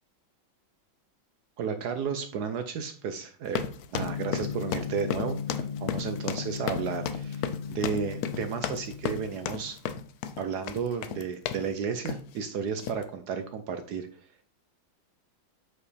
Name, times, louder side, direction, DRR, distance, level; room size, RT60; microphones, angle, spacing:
voice 1, 1.6-3.7 3.9-9.8 10.4-14.1, right 6 dB, 70° right, 8 dB, 1.0 m, -33 dB
sound 1, 3.5-11.7 12.1-12.4 12.8-13.0, left 8 dB, 85° left, 0.8 m, -34 dB
Gong, 3.9-9.8, left 7 dB, 40° right, 1.4 m, -37 dB
8.1 x 4.9 x 3.3 m, 0.42 s
omnidirectional pair, 2.3 m